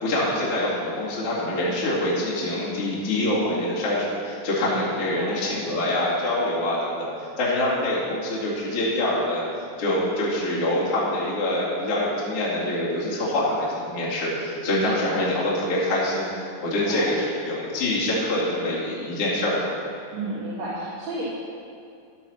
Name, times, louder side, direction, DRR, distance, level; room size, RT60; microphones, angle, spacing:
voice 1, 0.0-7.1 7.4-9.4 9.8-19.8, left 1 dB, 45° left, -8 dB, 3.0 m, -25 dB
voice 2, 4.7-5.4 14.7-15.1 16.6-17.1 20.1-21.3, right 1 dB, 60° right, -11 dB, 3.3 m, -33 dB
11.5 x 10.0 x 4.4 m, 2.5 s
omnidirectional pair, 3.8 m